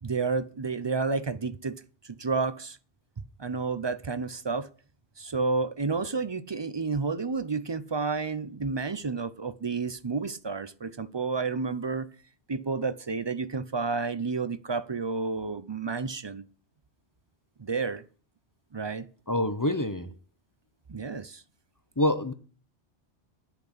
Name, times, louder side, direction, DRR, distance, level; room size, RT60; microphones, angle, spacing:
voice 1, 0.0-2.8 3.4-4.7 5.2-12.1 12.5-16.4 17.6-18.0 18.7-19.1 20.9-21.4, right 4 dB, 35° right, 0.5 m, -30 dB
voice 2, 19.3-20.1 22.0-22.3, left 1 dB, 20° left, 0.7 m, -26 dB
10.5 x 6.0 x 8.1 m
omnidirectional pair, 1.2 m